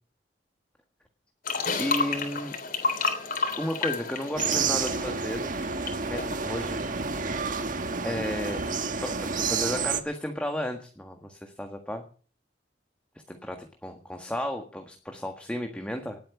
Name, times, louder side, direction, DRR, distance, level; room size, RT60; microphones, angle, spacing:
sound 1, 1.5-5.9 6.2-6.4, left 4 dB, 55° left, 3.5 m, -30 dB
voice 1, 1.8-2.5 3.6-5.5 5.9-7.2 8.0-8.6 9.0-12.0 13.3-13.6 13.8-16.2, left 1 dB, 5° left, 4 dB, 1.6 m, -33 dB
sound 2, 4.4-10.0, right 5 dB, 50° right, 1.5 m, -29 dB
19.0 x 8.8 x 7.2 m, 0.41 s
head